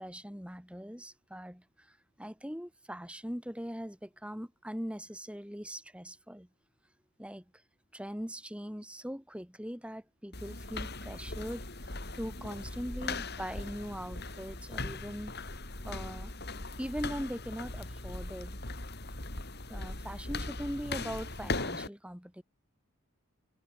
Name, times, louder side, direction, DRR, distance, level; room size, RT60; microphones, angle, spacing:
voice 1, 0.0-6.5 7.2-7.4 7.9-16.3 16.8-18.6 19.7-22.4, equal, 5° right, 6.8 m, -41 dB
sound 1, 10.3-21.9, left 2 dB, 45° left, 4.6 m, -39 dB
head